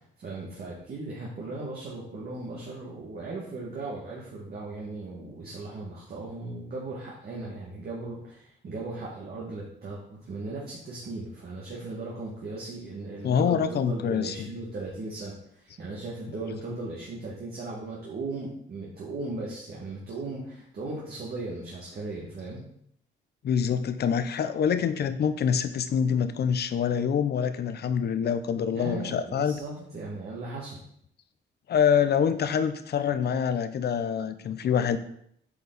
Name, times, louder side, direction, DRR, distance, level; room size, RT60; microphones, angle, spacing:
voice 1, 0.0-22.6 28.7-30.8, right 3 dB, 50° right, -4 dB, 1.9 m, -37 dB
voice 2, 13.2-14.5 23.4-29.6 31.7-35.0, left 7 dB, 55° left, 11 dB, 0.7 m, -25 dB
8.3 x 4.6 x 4.1 m, 0.69 s
cardioid pair, 90°, 20 cm